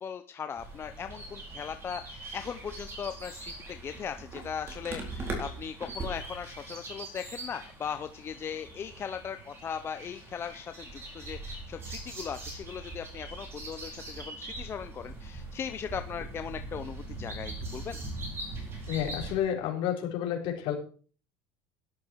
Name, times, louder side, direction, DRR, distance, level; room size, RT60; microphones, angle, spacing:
voice 1, 0.0-18.0, left 7 dB, 20° left, 9 dB, 0.6 m, -38 dB
sound 1, 0.6-19.4, right 2 dB, 20° right, 4.2 m, -41 dB
voice 2, 18.9-20.7, left 10 dB, 50° left, 2 dB, 4.2 m, -30 dB
12.5 x 11.0 x 4.7 m, 0.41 s
cardioid pair, 160°, 11 cm